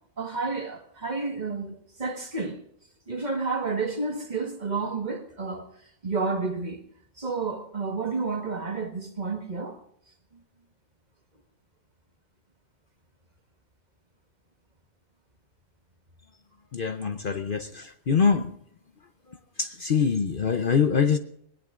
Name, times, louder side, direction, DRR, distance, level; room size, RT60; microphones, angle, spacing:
voice 1, 0.2-2.6 3.1-5.7 6.0-6.8 7.2-9.8 10.3-10.4, right 4 dB, 35° right, 1.7 m, -30 dB
voice 2, 16.7-18.6 19.6-21.2, left 6 dB, 50° left, 0.9 m, -24 dB
21.0 x 19.5 x 2.5 m
omnidirectional pair, 1.3 m